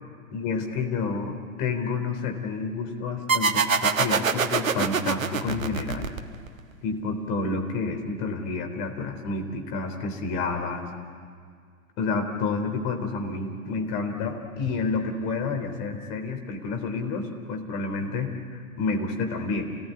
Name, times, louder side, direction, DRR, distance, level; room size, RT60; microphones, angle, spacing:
voice 1, 0.3-6.1 6.8-10.9 12.0-19.8, left 4 dB, 40° left, 5 dB, 3.7 m, -29 dB
sound 1, 3.3-6.6, right 5 dB, 70° right, 1.4 m, -25 dB
28.5 x 18.5 x 9.3 m, 2.1 s
figure-of-eight pair, 95°, 42 cm